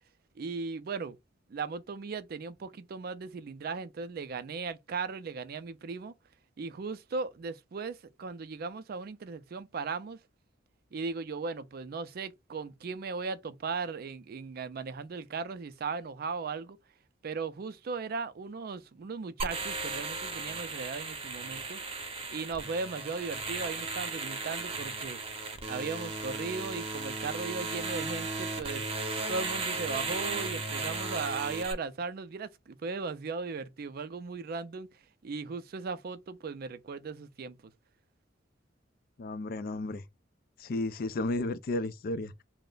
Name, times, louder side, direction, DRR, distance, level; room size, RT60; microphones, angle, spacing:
voice 1, 0.4-1.2 1.5-6.1 6.6-10.2 10.9-16.8 17.2-21.8 22.3-25.2 25.7-28.8 29.3-34.9 35.2-37.6, right 4 dB, 55° right, 0.4 m, -37 dB
sound 1, 19.4-31.7, right 3 dB, 30° right, 0.7 m, -36 dB
voice 2, 39.2-40.0 40.6-42.4, left 2 dB, 50° left, 0.4 m, -33 dB
3.2 x 2.1 x 3.8 m
head